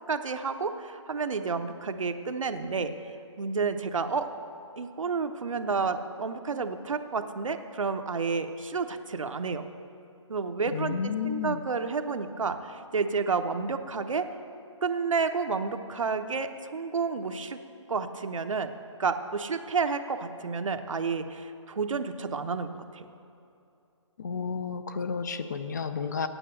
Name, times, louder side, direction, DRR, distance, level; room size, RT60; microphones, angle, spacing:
voice 1, 0.1-2.9 3.4-4.3 4.8-9.7 10.3-14.3 14.8-17.6 17.9-18.7 19.0-23.0, right 5 dB, 80° right, 7 dB, 0.9 m, -30 dB
voice 2, 10.7-11.6 24.2-26.3, left 6 dB, 35° left, 10 dB, 0.5 m, -31 dB
9.1 x 8.7 x 8.0 m, 2.7 s
hypercardioid pair, 165°, 16 cm